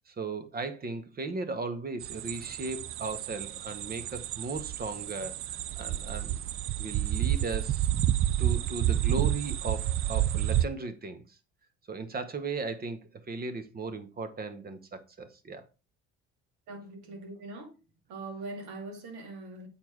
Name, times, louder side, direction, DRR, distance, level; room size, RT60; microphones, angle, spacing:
voice 1, 0.1-6.4 6.8-7.9 8.4-11.2 11.9-13.0 13.3-15.6, right 3 dB, 30° right, 1.2 m, -36 dB
sound 1, 2.0-10.7, right 12 dB, 45° right, 0.5 m, -30 dB
voice 2, 16.7-17.7 18.1-19.7, right 2 dB, 70° right, 2.4 m, -41 dB
7.4 x 4.4 x 4.6 m
supercardioid pair, 90°, 29 cm